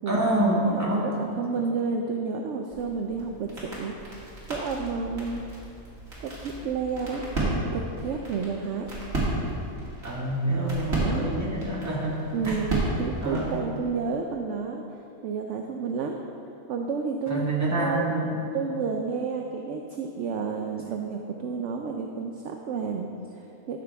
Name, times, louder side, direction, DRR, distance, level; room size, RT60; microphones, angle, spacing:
voice 1, 0.1-1.1 10.0-12.2 12.5-12.6 13.2-13.5 17.3-18.3, right 1 dB, 10° right, -5 dB, 1.4 m, -26 dB
voice 2, 0.7-5.5 6.2-8.9 10.5-11.3 12.3-16.2 16.7-17.4 17.8-18.1 18.5-23.8, right 5 dB, 65° right, 3 dB, 0.8 m, -31 dB
sound 1, 2.7-13.6, right 1 dB, 45° right, 2.3 m, -33 dB
12.0 x 6.7 x 3.4 m, 2.7 s
omnidirectional pair, 1.5 m